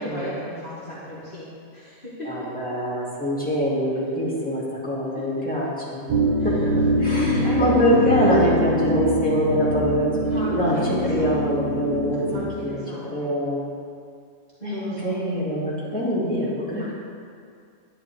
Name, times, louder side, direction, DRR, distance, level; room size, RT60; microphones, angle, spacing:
voice 1, 0.0-2.5 5.1-5.5 7.1-8.6 10.2-11.5 12.3-13.2 14.6-15.2, left 1 dB, 40° left, -9 dB, 1.7 m, -34 dB
voice 2, 2.2-6.0 6.4-6.7 7.0-10.2 10.5-10.8 11.0-12.3 12.6-12.8 13.1-13.6 14.6-16.9, equal, 5° left, -8 dB, 2.5 m, -24 dB
sound 1, 6.1-12.5, equal, 80° right, 1.7 m, -23 dB
10.5 x 9.9 x 3.5 m, 2.3 s
omnidirectional pair, 1.5 m